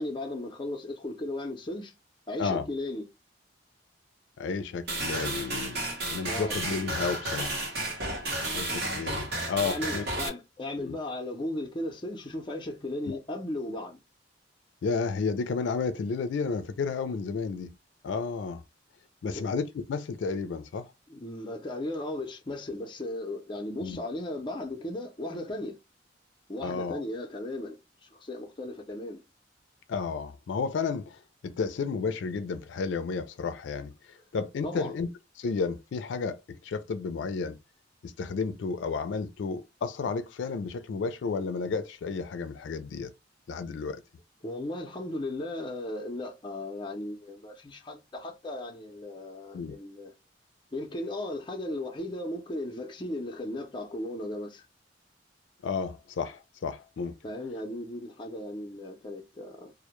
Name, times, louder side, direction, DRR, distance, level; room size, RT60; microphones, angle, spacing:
voice 1, 0.0-1.9 2.3-3.1 6.3-6.6 9.6-14.0 19.2-19.5 21.1-25.8 26.5-29.2 34.6-34.9 44.4-50.1 50.7-54.7 57.2-59.7, left 1 dB, 25° left, 0.5 m, -36 dB
voice 2, 4.4-7.6 8.5-10.0 10.8-10.9 13.0-13.2 14.8-17.7 18.0-18.6 19.2-20.9 23.8-24.0 26.6-27.0 29.9-33.9 34.3-35.1 35.4-37.6 38.0-43.1 43.5-44.0 49.5-49.8 55.6-57.1, left 5 dB, 85° left, 0.4 m, -32 dB
sound 1, 4.9-10.3, right 1 dB, 60° right, 0.8 m, -32 dB
2.1 x 2.0 x 2.9 m
head